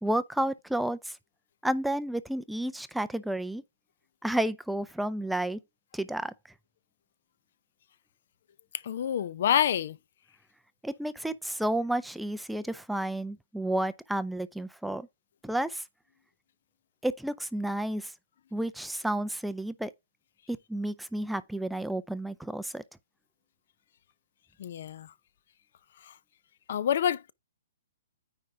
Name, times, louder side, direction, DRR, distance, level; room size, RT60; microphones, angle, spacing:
voice 1, 0.0-1.2 1.6-3.6 4.2-5.6 5.9-6.3 10.8-15.1 15.4-15.8 17.0-18.1 18.5-19.9 20.5-22.8, right 1 dB, ahead, 0.4 m, -31 dB
voice 2, 8.8-10.0 24.6-25.1 26.7-27.3, left 9 dB, 55° left, 0.5 m, -27 dB
9.5 x 3.8 x 4.6 m
hypercardioid pair, 160°, 0 cm